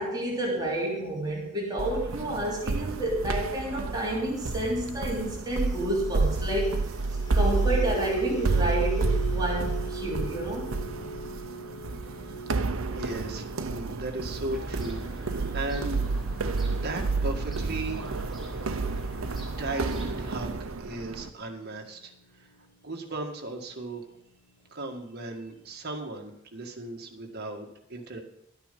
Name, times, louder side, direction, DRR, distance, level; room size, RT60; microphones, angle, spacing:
voice 1, 0.0-6.8 7.3-10.7, right 1 dB, 20° right, -4 dB, 3.3 m, -30 dB
sound 1, 1.8-21.3, right 3 dB, 85° right, 0.8 m, -30 dB
sound 2, 6.7-23.0 23.3-23.6 24.0-24.2, right 3 dB, 65° left, 1.6 m, -41 dB
voice 2, 11.9-12.6 12.9-16.1 16.7-18.2 18.5-18.7 19.6-22.5 22.8-24.2 24.7-28.2, right 2 dB, 50° right, 2 dB, 1.8 m, -37 dB
Fowl / Gull seagull, 14.5-20.4, right 1 dB, ahead, 3.1 m, -41 dB
12.5 x 9.1 x 5.3 m, 0.80 s
head